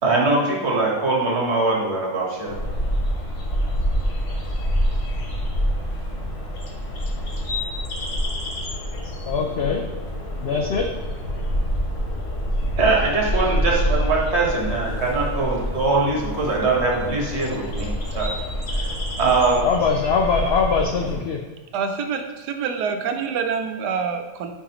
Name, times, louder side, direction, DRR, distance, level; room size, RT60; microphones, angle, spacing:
voice 1, 0.0-2.6 12.8-18.3 18.7-18.9 19.2-19.6, right 3 dB, 45° right, -1 dB, 1.5 m, -22 dB
sound 1, 2.5-21.2, equal, 45° left, 1.1 m, -26 dB
voice 2, 9.2-9.9 10.4-10.9 19.6-21.4, left 5 dB, 90° left, 2 dB, 0.5 m, -22 dB
voice 3, 21.7-24.5, right 6 dB, 85° right, 6 dB, 1.3 m, -26 dB
8.7 x 4.8 x 3.0 m, 1.3 s
omnidirectional pair, 1.7 m